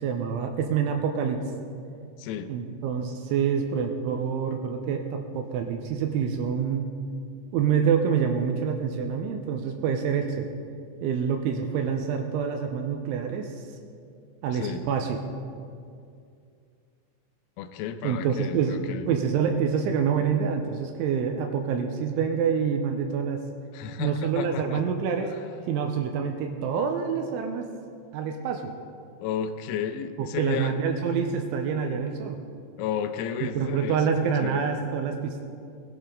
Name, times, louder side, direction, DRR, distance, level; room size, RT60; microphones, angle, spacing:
voice 1, 0.0-1.4 2.5-6.9 7.5-10.5 11.0-13.6 14.4-15.2 18.0-18.8 19.1-23.4 24.0-25.3 25.7-27.7 28.1-28.7 30.2-32.4 33.4-35.5, right 7 dB, 85° right, 4 dB, 2.9 m, -27 dB
voice 2, 2.2-2.5 14.5-14.8 17.6-19.1 23.7-24.8 29.2-30.8 32.8-34.0 34.4-34.6, left 8 dB, 90° left, 10 dB, 3.5 m, -32 dB
20.0 x 12.0 x 3.8 m, 2.4 s
omnidirectional pair, 6.0 m